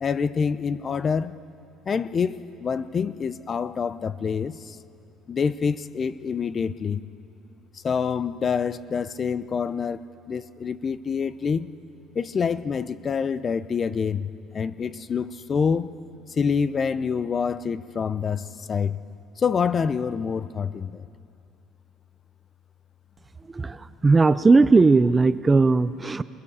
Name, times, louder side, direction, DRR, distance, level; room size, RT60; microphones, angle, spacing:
voice 1, 0.0-1.4 1.9-4.8 5.3-7.0 7.7-11.7 12.1-15.9 16.3-19.0 19.4-21.0, left 6 dB, 30° left, 15 dB, 0.6 m, -26 dB
voice 2, 23.5-26.2, right 3 dB, 20° right, 14 dB, 0.5 m, -18 dB
22.5 x 20.0 x 7.3 m, 2.6 s
cardioid pair, 130°, 0 cm